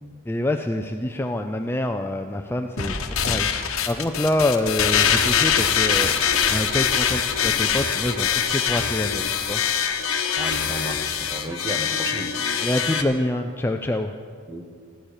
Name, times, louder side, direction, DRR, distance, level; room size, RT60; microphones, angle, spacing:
voice 1, 0.3-6.2 6.5-9.6 12.6-14.1, left 1 dB, 10° left, 4 dB, 0.5 m, -26 dB
sound 1, 2.8-13.0, left 7 dB, 75° left, 1.3 m, -23 dB
voice 2, 10.4-12.3 14.5-14.7, right 1 dB, 20° right, 5 dB, 1.2 m, -33 dB
16.5 x 11.5 x 6.6 m, 2.1 s
head